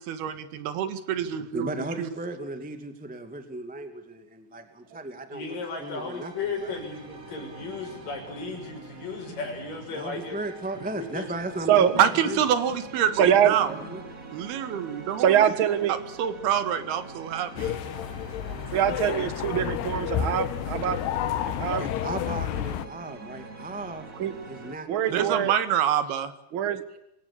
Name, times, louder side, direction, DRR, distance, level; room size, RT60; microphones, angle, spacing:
voice 1, 0.0-1.7 2.0-2.1 12.0-13.8 14.3-15.4 15.9-17.8 25.1-26.3, right 9 dB, 70° right, 12 dB, 3.5 m, -26 dB
voice 2, 1.5-6.3 6.6-6.8 9.9-12.4 13.2-14.0 21.8-24.0 24.4-25.5, right 2 dB, 5° right, 8 dB, 1.2 m, -36 dB
voice 3, 5.3-10.4 10.9-11.3, left 4 dB, 50° left, 2 dB, 8.1 m, -35 dB
sound 1, 5.4-24.8, right 3 dB, 25° right, 2.2 m, -44 dB
voice 4, 13.2-13.5 15.2-15.9 18.7-21.0 21.5-21.8 24.2-24.3 24.9-25.5 26.5-26.8, right 9 dB, 85° right, 12 dB, 1.1 m, -23 dB
sound 2, 17.6-22.9, left 10 dB, 75° left, 3.1 m, -30 dB
26.5 x 17.0 x 8.7 m, 0.83 s
omnidirectional pair, 4.9 m